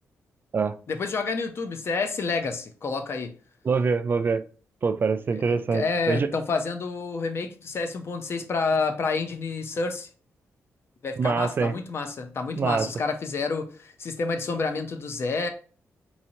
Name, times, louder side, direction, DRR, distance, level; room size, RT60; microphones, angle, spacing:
voice 1, 0.9-3.4 5.3-10.1 11.0-15.5, left 4 dB, 50° left, 0.6 m, -29 dB
voice 2, 3.7-4.4 4.8-6.3 11.2-11.7 12.5-12.9, right 5 dB, 40° right, 0.3 m, -24 dB
4.1 x 2.8 x 2.8 m
cardioid pair, 105°, 5 cm